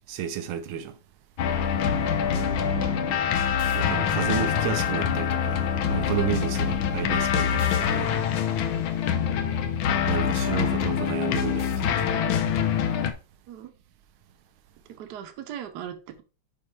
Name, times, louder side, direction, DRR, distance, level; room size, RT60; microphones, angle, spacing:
voice 1, 0.1-1.0 3.7-8.2 10.1-12.2, right 9 dB, 85° right, 1.6 m, -32 dB
sound 1, 1.4-13.1, left 8 dB, 75° left, 1.5 m, -25 dB
voice 2, 2.2-3.2 8.9-9.4 13.5-13.7 15.0-16.2, right 10 dB, 60° right, 1.3 m, -40 dB
5.5 x 4.7 x 4.4 m
omnidirectional pair, 2.3 m